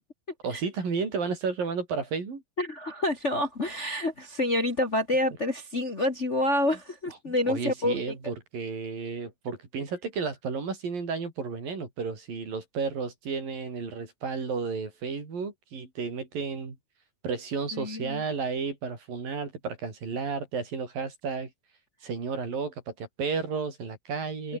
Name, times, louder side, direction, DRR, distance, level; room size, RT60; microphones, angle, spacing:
voice 1, 0.4-2.4 7.3-16.8 17.2-21.5 22.0-24.6, right 5 dB, 90° right, 7.3 m, -32 dB
voice 2, 2.6-8.0 8.2-8.3 17.7-18.2 24.5-24.6, left 1 dB, 30° left, 1.4 m, -28 dB
omnidirectional pair, 3.9 m